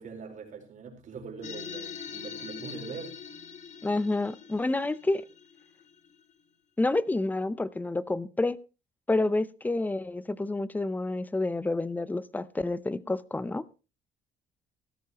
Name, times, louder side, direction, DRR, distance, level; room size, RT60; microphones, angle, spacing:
voice 1, 0.0-3.1, right 5 dB, 50° right, 4.4 m, -42 dB
sound 1, 1.4-6.3, left 6 dB, 45° left, 1.2 m, -43 dB
voice 2, 3.8-5.2 6.8-8.6 9.1-13.6, left 2 dB, 10° left, 0.6 m, -29 dB
16.0 x 13.0 x 3.0 m
cardioid pair, 110°, 17 cm